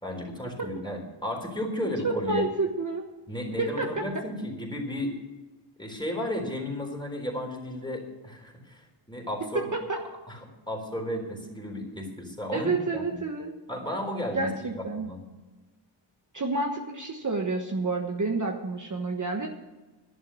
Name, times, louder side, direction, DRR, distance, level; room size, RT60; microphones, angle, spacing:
voice 1, 0.0-2.4 3.3-5.2 5.8-8.8 9.1-9.7 10.3-13.2 13.7-14.7 15.0-15.2, left 1 dB, 10° left, 1 dB, 3.7 m, -33 dB
voice 2, 2.0-3.1 3.6-4.0 9.7-10.0 12.5-13.5 14.3-15.1 16.3-19.5, right 3 dB, 40° right, 2 dB, 1.2 m, -29 dB
11.5 x 11.0 x 6.2 m, 1.2 s
wide cardioid pair, 105°, 48 cm